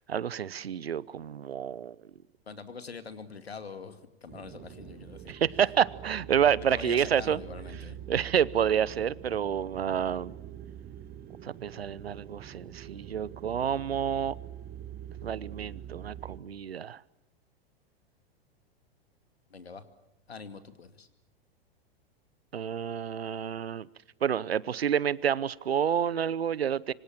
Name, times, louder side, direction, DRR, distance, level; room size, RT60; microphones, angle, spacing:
voice 1, 0.0-2.0 5.3-7.4 8.1-10.3 11.4-14.3 15.2-17.0 22.5-23.9 24.2-26.9, right 8 dB, 75° right, 22 dB, 0.9 m, -29 dB
voice 2, 2.5-5.3 6.6-8.0 19.5-19.8 20.3-21.1, left 5 dB, 80° left, 10 dB, 2.4 m, -44 dB
sound 1, 4.3-16.4, right 10 dB, 30° right, 1.7 m, -44 dB
26.0 x 25.5 x 7.5 m, 0.86 s
figure-of-eight pair, 100°, 31 cm